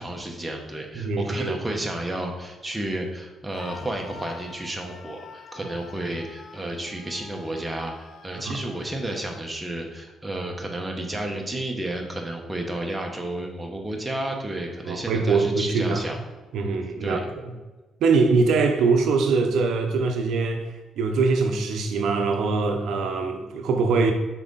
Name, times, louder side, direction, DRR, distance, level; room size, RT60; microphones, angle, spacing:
voice 1, 0.0-16.2 17.0-17.2, right 1 dB, 10° right, 1 dB, 1.0 m, -32 dB
voice 2, 1.0-1.6 8.4-8.5 14.9-16.0 16.5-17.2 18.0-24.1, right 4 dB, 75° right, 4 dB, 0.6 m, -23 dB
Screaming, 3.5-9.4, left 4 dB, 65° left, 0.6 m, -46 dB
5.8 x 4.0 x 4.0 m, 1.2 s
cardioid pair, 90°, 0 cm